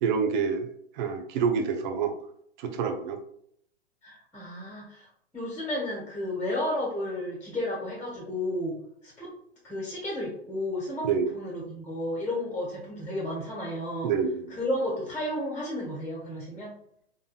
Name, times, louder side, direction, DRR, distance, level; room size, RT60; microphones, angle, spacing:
voice 1, 0.0-0.7 1.0-2.1 2.6-3.2 11.0-11.3 14.0-14.6, right 6 dB, 45° right, 5 dB, 0.8 m, -27 dB
voice 2, 4.0-8.7 9.0-9.3 9.6-11.1 11.3-14.1 14.5-16.7, left 1 dB, 5° left, -3 dB, 1.4 m, -32 dB
3.9 x 3.8 x 2.4 m, 0.70 s
hypercardioid pair, 115°, 33 cm